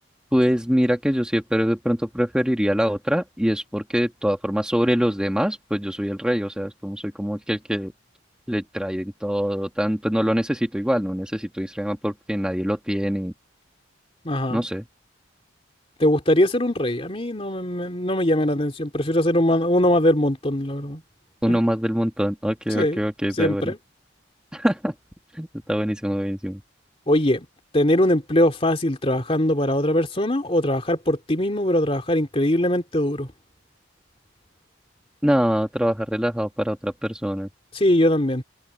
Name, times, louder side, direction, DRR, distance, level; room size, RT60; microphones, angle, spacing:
voice 1, 0.3-7.9 8.5-13.3 14.5-14.8 21.4-23.7 24.5-24.9 25.3-26.6 35.2-37.5, equal, 5° right, 1.5 m, -24 dB
voice 2, 14.2-14.6 16.0-21.0 21.5-21.6 22.7-23.0 23.4-23.8 27.1-27.5 27.7-33.3 37.7-38.4, left 1 dB, 30° left, 2.6 m, -21 dB
head